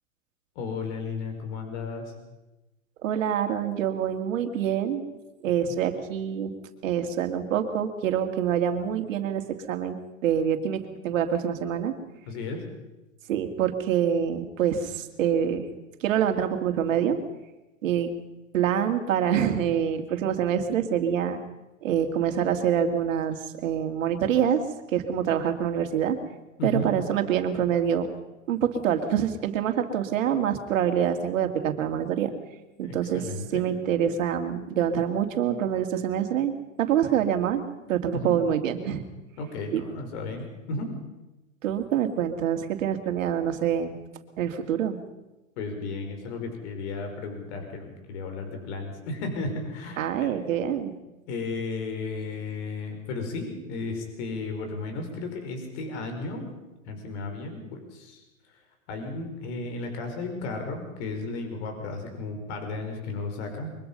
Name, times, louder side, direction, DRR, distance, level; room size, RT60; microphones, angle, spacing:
voice 1, 0.6-2.1 5.7-5.8 12.3-12.6 26.6-26.9 32.8-33.7 38.1-38.4 39.4-40.9 45.6-50.3 51.3-56.5 56.9-58.2 58.9-63.7, left 3 dB, 55° left, 5 dB, 5.3 m, -34 dB
voice 2, 3.0-5.0 5.4-6.5 6.8-9.4 9.7-10.0 10.2-11.9 13.3-15.6 16.0-17.2 17.8-18.1 18.5-21.4 21.8-24.6 24.9-26.2 26.6-28.1 28.5-32.3 32.8-39.0 39.7-39.8 41.6-44.0 44.4-45.0 50.0-50.9, right 9 dB, 65° right, 6 dB, 2.8 m, -26 dB
23.5 x 22.5 x 5.5 m, 1.0 s
hypercardioid pair, 125°, 41 cm